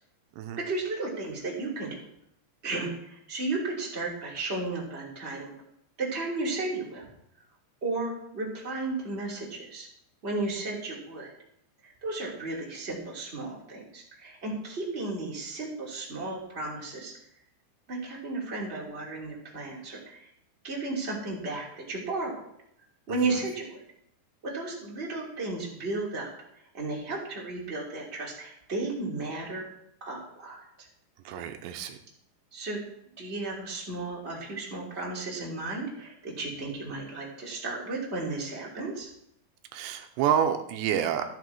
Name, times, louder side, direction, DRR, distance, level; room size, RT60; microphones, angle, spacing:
voice 1, 0.6-2.0 2.6-5.5 6.0-7.1 7.8-9.9 10.2-11.3 11.8-17.1 17.9-20.3 20.6-22.4 23.1-23.8 24.4-26.3 26.7-29.6 30.0-30.9 32.5-32.8 33.2-39.1, right 2 dB, 15° right, -4 dB, 2.4 m, -34 dB
voice 2, 31.3-32.0 39.7-41.2, right 9 dB, 80° right, 7 dB, 2.9 m, -28 dB
14.5 x 6.8 x 4.7 m, 0.73 s
omnidirectional pair, 5.2 m